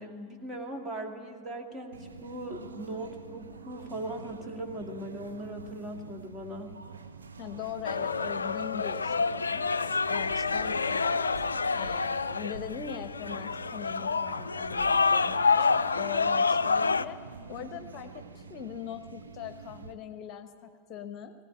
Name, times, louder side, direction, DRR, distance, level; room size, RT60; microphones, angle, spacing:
voice 1, 0.0-6.8, right 1 dB, 20° right, 3 dB, 2.2 m, -39 dB
sound 1, 1.9-19.9, right 5 dB, 70° right, 1.1 m, -46 dB
voice 2, 7.4-11.2 11.7-17.2 17.5-21.3, left 9 dB, 35° left, 9 dB, 1.0 m, -41 dB
sound 2, 7.8-17.0, left 4 dB, 75° left, 0.4 m, -28 dB
19.0 x 17.0 x 8.9 m, 2.2 s
figure-of-eight pair, 90°, 0 cm